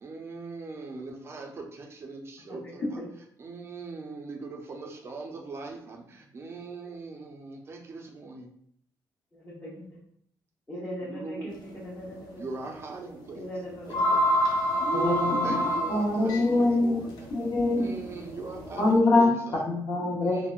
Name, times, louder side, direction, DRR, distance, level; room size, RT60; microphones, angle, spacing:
voice 1, 0.0-3.0 3.4-8.5 11.1-11.5 12.4-13.5 13.9-14.0 14.8-17.1 17.8-19.5 20.2-20.5, right 3 dB, 35° right, 3 dB, 0.5 m, -39 dB
voice 2, 2.5-3.1 9.3-9.9 10.7-12.5 13.3-14.1 16.1-16.2, equal, 20° left, -9 dB, 1.0 m, -40 dB
sound 1, 11.5-11.8 12.1-12.2 13.3-13.4 13.7-19.0, equal, 75° left, 0.6 m, -29 dB
voice 3, 14.9-17.0 17.3-17.9 18.8-20.5, left 2 dB, 50° left, -4 dB, 1.0 m, -24 dB
3.5 x 2.1 x 2.4 m, 0.66 s
cardioid pair, 125°, 8 cm